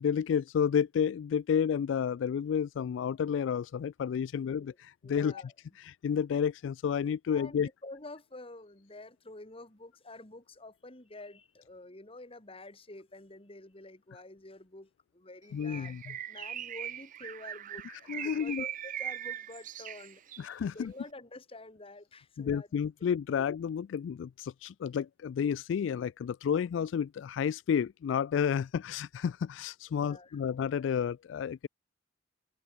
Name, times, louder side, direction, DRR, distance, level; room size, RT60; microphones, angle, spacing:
voice 1, 0.0-5.4 5.8-7.7 15.5-16.2 18.1-18.6 20.4-20.9 22.4-31.7, left 7 dB, 90° left, 0.3 m, -31 dB
voice 2, 5.0-5.5 7.3-22.7 23.0-23.1 29.9-30.4, left 2 dB, 30° left, 2.8 m, -49 dB
Bird, 15.6-20.5, right 10 dB, 45° right, 0.5 m, -40 dB
head